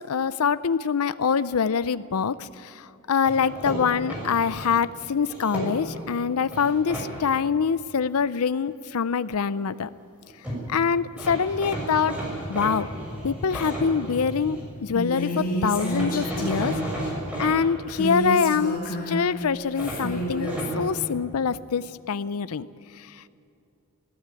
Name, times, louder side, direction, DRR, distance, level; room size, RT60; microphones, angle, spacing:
voice 1, 0.0-2.5 3.1-9.9 10.7-12.1 12.5-12.9 13.2-16.8 17.4-18.8 19.1-22.7, left 6 dB, 75° left, 16 dB, 0.5 m, -24 dB
sound 1, 3.2-4.7 5.2-6.0 6.5-7.1 10.2-10.3 10.4-10.6 11.2-14.6 15.7-17.5 19.8-20.7, right 1 dB, 5° right, 6.8 m, -33 dB
Female speech woman speaking, 14.9-16.9 17.9-19.3 19.7-20.7, equal, 40° left, 5.2 m, -29 dB
20.0 x 15.5 x 9.1 m, 2.6 s
head